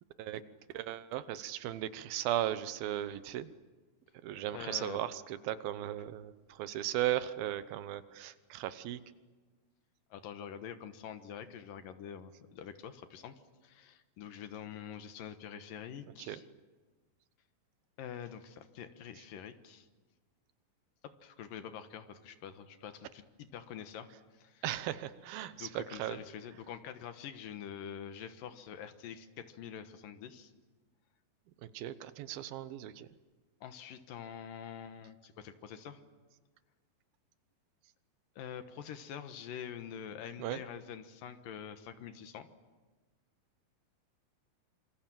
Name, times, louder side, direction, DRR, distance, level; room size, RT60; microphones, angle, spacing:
voice 1, 0.7-3.5 4.2-9.0 16.3-16.4 24.6-26.2 31.7-33.1 40.4-40.6, right 13 dB, 85° right, 13 dB, 2.8 m, -36 dB
voice 2, 4.5-5.0 10.1-13.3 13.6-16.4 18.0-19.9 21.0-24.1 24.3-24.6 25.5-30.5 33.6-36.0 38.4-42.5, left 8 dB, 75° left, 9 dB, 2.9 m, -46 dB
27.0 x 25.5 x 7.6 m, 1.3 s
omnidirectional pair, 4.1 m